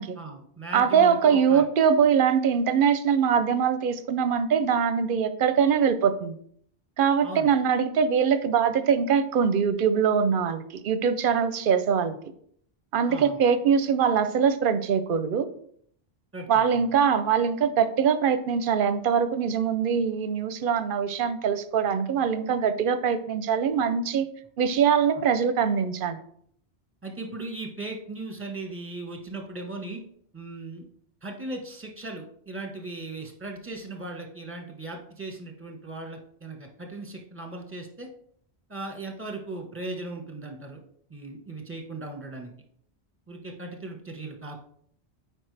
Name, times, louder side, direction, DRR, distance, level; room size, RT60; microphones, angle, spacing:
voice 1, 0.2-1.6 7.2-7.5 13.1-13.4 16.3-16.8 27.0-30.0 30.3-30.8 31.2-38.1 38.7-40.8 41.1-42.5 43.3-44.6, right 2 dB, 10° right, 2 dB, 1.2 m, -38 dB
voice 2, 0.7-6.4 7.0-12.2 12.9-15.5 16.5-24.3 24.6-26.2, right 7 dB, 60° right, 12 dB, 0.7 m, -23 dB
8.6 x 4.9 x 3.3 m, 0.63 s
omnidirectional pair, 1.1 m